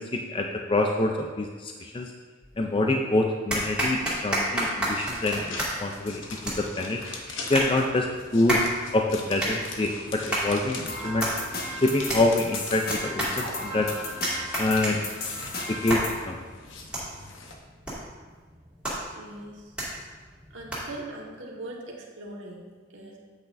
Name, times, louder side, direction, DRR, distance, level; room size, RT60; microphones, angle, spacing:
voice 1, 0.0-2.1 2.6-7.0 7.5-8.7 8.9-11.3 11.7-13.9 14.6-15.0 15.7-16.4, left 2 dB, 25° left, 2 dB, 0.5 m, -26 dB
sound 1, 2.4-3.0 3.5-21.1, right 1 dB, 5° right, 2.2 m, -32 dB
sound 2, 4.9-17.5, left 3 dB, 85° left, 1.0 m, -42 dB
sound 3, 10.9-16.2, left 2 dB, 55° left, 1.4 m, -35 dB
voice 2, 19.1-19.7 20.5-23.2, right 1 dB, 80° right, -2 dB, 1.6 m, -41 dB
8.9 x 8.2 x 2.6 m, 1.4 s
head